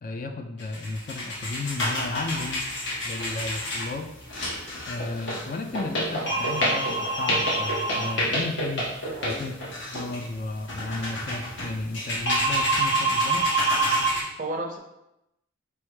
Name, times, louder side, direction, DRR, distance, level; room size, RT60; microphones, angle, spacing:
voice 1, 0.0-2.6 3.1-4.1 4.9-8.9 9.2-9.6 9.9-13.5, left 3 dB, 40° left, 7 dB, 0.3 m, -34 dB
sound 1, 0.6-14.2, right 1 dB, 60° left, 1.0 m, -27 dB
voice 2, 9.0-9.5 14.4-14.8, right 1 dB, 40° right, 3 dB, 0.5 m, -33 dB
4.2 x 3.4 x 3.2 m, 0.87 s
head